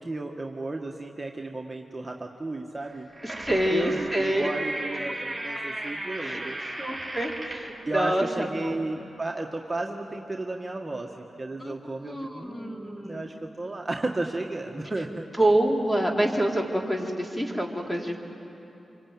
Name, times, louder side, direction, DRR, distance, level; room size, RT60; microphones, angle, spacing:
voice 1, 0.0-3.1 3.5-6.6 7.9-15.3, right 2 dB, 25° right, 1 dB, 1.8 m, -33 dB
large creaking door, 2.9-7.7, right 1 dB, 10° right, 5.1 m, -35 dB
voice 2, 3.2-4.5 6.2-6.4 6.8-8.7 11.6-11.7 12.0-13.2 15.4-18.2, right 1 dB, 10° left, 1 dB, 4.1 m, -27 dB
26.5 x 24.0 x 9.2 m, 2.9 s
supercardioid pair, 45°, 0 cm